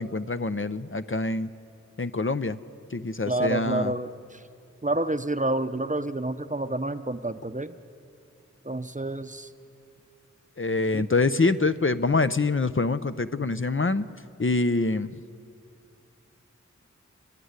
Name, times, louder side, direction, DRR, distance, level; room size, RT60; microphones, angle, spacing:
voice 1, 0.0-1.5 2.0-2.6 2.9-3.9 10.6-14.0 14.4-15.1, left 3 dB, 45° left, 11 dB, 0.6 m, -25 dB
voice 2, 3.3-4.1 4.8-7.7 8.7-9.5 10.9-11.1, right 2 dB, 25° right, 11 dB, 0.7 m, -28 dB
30.0 x 11.5 x 9.7 m, 2.5 s
wide cardioid pair, 40°, 30 cm